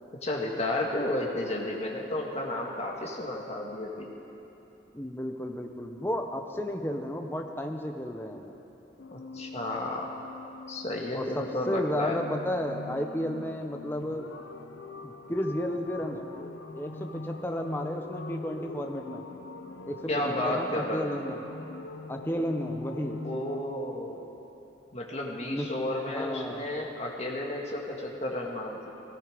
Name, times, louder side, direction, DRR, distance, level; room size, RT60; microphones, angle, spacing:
voice 1, 0.2-4.1 9.1-10.1 10.7-12.2 20.1-21.1 23.2-24.2 24.9-28.9, left 1 dB, 35° left, -1 dB, 1.9 m, -32 dB
voice 2, 4.9-8.5 11.1-14.3 15.0-16.3 16.7-19.2 19.9-20.0 20.4-21.4 22.1-23.2 25.4-25.7 26.1-26.6, equal, 10° left, 4 dB, 0.9 m, -33 dB
sound 1, 9.0-23.6, left 2 dB, 85° left, 0.8 m, -42 dB
17.5 x 16.0 x 5.2 m, 3.0 s
head